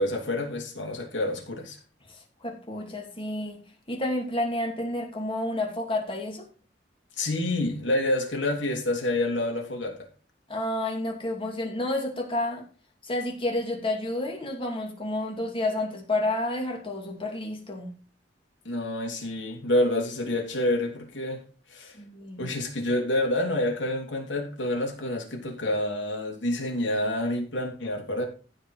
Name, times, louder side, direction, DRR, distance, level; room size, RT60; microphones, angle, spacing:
voice 1, 0.0-1.8 7.2-10.1 18.6-21.4 21.7-22.0 22.4-28.3, left 1 dB, 75° left, 3.2 m, -28 dB
voice 2, 2.4-3.6 3.9-6.4 10.5-12.6 13.0-17.9 22.0-22.5, left 1 dB, 30° left, 2.7 m, -30 dB
15.0 x 5.3 x 4.9 m
head